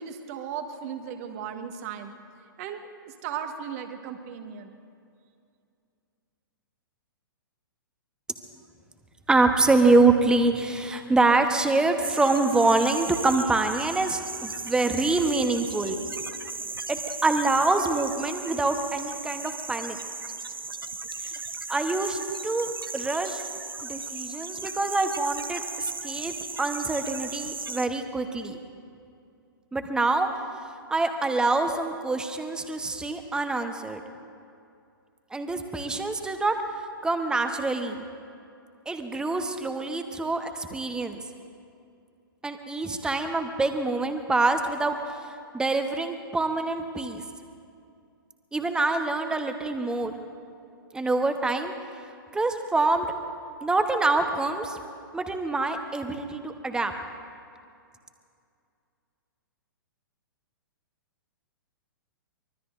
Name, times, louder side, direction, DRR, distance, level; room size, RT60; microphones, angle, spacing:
voice 1, 0.0-2.1 2.6-4.8, right 8 dB, 40° right, 6 dB, 1.6 m, -36 dB
voice 2, 9.3-16.0 16.9-20.0 21.2-21.3 21.7-23.4 23.8-28.6 29.7-30.3 30.9-34.0 35.3-36.6 37.0-38.0 38.9-41.2 42.4-45.0 45.5-47.2 48.5-50.2 50.9-51.7 52.3-53.1 53.6-54.8 55.1-56.9, right 3 dB, 5° right, 6 dB, 1.1 m, -25 dB
sound 1, 12.0-27.9, right 4 dB, 80° right, 0.8 m, -36 dB
24.5 x 22.5 x 2.6 m, 2.4 s
figure-of-eight pair, 110°, 12 cm